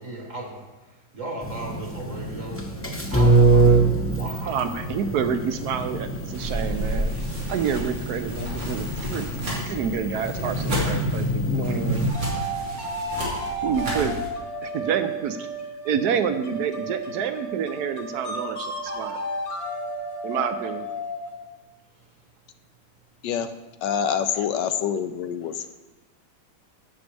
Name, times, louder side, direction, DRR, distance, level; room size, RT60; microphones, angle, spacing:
voice 1, 0.0-2.6 3.1-4.7 25.4-25.7, right 2 dB, 45° right, 0 dB, 1.5 m, -37 dB
sound 1, 1.4-12.1, right 2 dB, 15° left, 0.5 m, -24 dB
voice 2, 4.5-7.1 7.5-9.3 9.7-12.1 13.6-14.2 14.6-15.5 15.8-19.2 20.2-20.9, right 7 dB, 70° right, 9 dB, 1.0 m, -28 dB
sound 2, 6.3-14.3, equal, 90° right, 3.4 m, -32 dB
sound 3, 12.1-21.5, right 2 dB, 40° left, 1.3 m, -32 dB
voice 3, 23.8-25.7, left 8 dB, 75° left, 10 dB, 1.2 m, -26 dB
11.5 x 8.0 x 3.3 m, 1.1 s
omnidirectional pair, 2.0 m